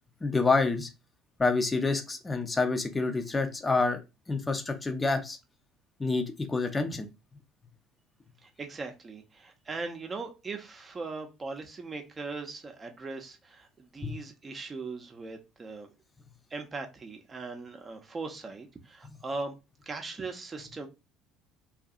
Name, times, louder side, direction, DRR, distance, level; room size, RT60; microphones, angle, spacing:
voice 1, 0.2-0.9 1.4-4.0 4.3-5.4 6.0-7.1 14.0-14.1, left 3 dB, 20° left, 6 dB, 0.6 m, -27 dB
voice 2, 8.4-15.9 16.5-19.6 19.9-20.9, right 3 dB, 30° right, 4 dB, 0.7 m, -39 dB
2.6 x 2.5 x 2.4 m, 0.26 s
hypercardioid pair, 65°, 0 cm